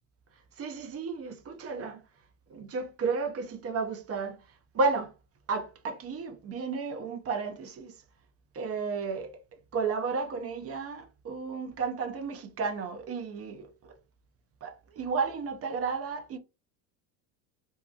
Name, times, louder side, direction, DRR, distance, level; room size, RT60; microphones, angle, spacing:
voice 1, 0.6-2.0 2.5-4.4 4.7-5.1 5.5-7.9 8.5-9.3 9.7-13.9 14.6-16.4, right 4 dB, 30° right, 0.5 m, -32 dB
2.9 x 2.4 x 2.3 m
supercardioid pair, 90°, 48 cm